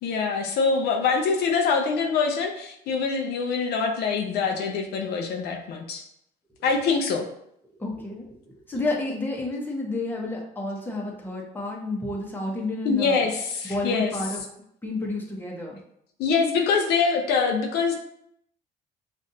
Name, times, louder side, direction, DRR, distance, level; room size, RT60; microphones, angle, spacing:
voice 1, 0.0-6.0 6.6-7.3 12.8-14.1 16.2-17.9, left 5 dB, 75° left, 4 dB, 0.6 m, -24 dB
voice 2, 7.8-8.3 8.7-13.3 13.6-14.4 14.8-15.8, left 2 dB, 10° left, -1 dB, 1.0 m, -30 dB
5.2 x 2.5 x 2.7 m, 0.73 s
cardioid pair, 110°, 17 cm